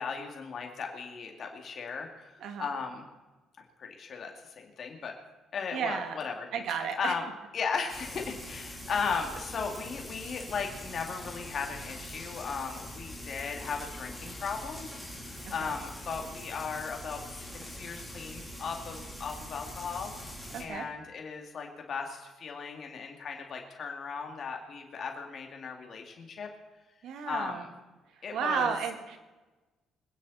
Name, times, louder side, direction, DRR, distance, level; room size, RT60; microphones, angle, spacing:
voice 1, 0.0-3.0 3.8-5.1 5.5-7.3 7.5-14.9 15.1-26.5 27.2-27.7 28.2-28.7, left 5 dB, 45° left, 2 dB, 2.4 m, -37 dB
voice 2, 5.7-6.2 6.5-7.1 15.6-15.8 20.5-20.9 27.0-27.6 28.3-29.2, right 7 dB, 70° right, 6 dB, 2.1 m, -33 dB
Frying (food), 7.9-20.6, left 1 dB, 5° right, 3.9 m, -43 dB
25.5 x 10.0 x 4.2 m, 1.2 s
cardioid pair, 130°, 0 cm